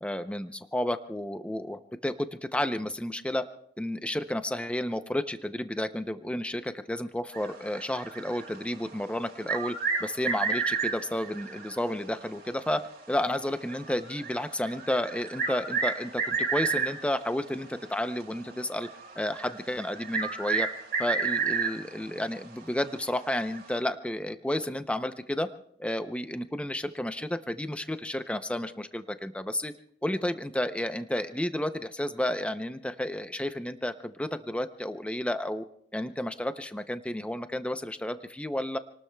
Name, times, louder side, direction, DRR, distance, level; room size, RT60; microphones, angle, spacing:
voice 1, 0.0-3.4 3.8-9.8 10.0-18.9 19.2-20.7 21.0-25.5 25.8-29.7 30.0-35.6 35.9-38.8, left 1 dB, 5° left, 9 dB, 0.5 m, -31 dB
sound 1, 7.3-8.9 9.3-12.0 12.2-12.3 13.0-13.1 13.7-17.3 18.0-18.2 18.8-22.0 22.4-22.5 23.5-23.8, right 5 dB, 55° right, 2.6 m, -31 dB
28.0 x 19.5 x 2.3 m, 0.67 s
head